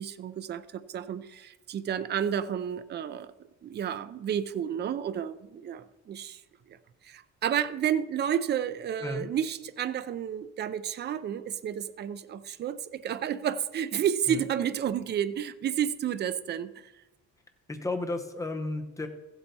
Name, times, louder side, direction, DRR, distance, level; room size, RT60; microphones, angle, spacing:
voice 1, 0.0-3.3 3.6-6.4 6.7-6.8 7.0-16.9, right 9 dB, 35° right, 12 dB, 0.4 m, -31 dB
voice 2, 17.7-19.1, left 2 dB, 10° left, 5 dB, 0.8 m, -33 dB
15.0 x 7.9 x 4.1 m, 1.1 s
cardioid pair, 175°, 31 cm